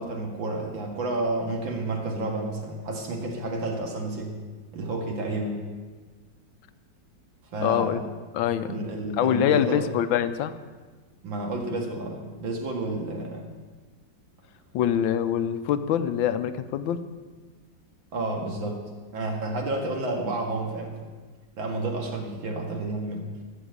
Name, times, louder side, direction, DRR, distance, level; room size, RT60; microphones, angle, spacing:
voice 1, 0.0-4.4 4.7-5.6 7.5-8.0 8.7-9.8 11.2-13.5 18.1-18.8 19.1-20.9 21.6-23.3, right 2 dB, 80° right, 1 dB, 2.6 m, -30 dB
voice 2, 7.6-8.0 8.3-8.8 9.2-10.5 14.7-17.0, left 10 dB, 85° left, 11 dB, 1.4 m, -24 dB
14.0 x 6.4 x 8.1 m, 1.4 s
omnidirectional pair, 2.1 m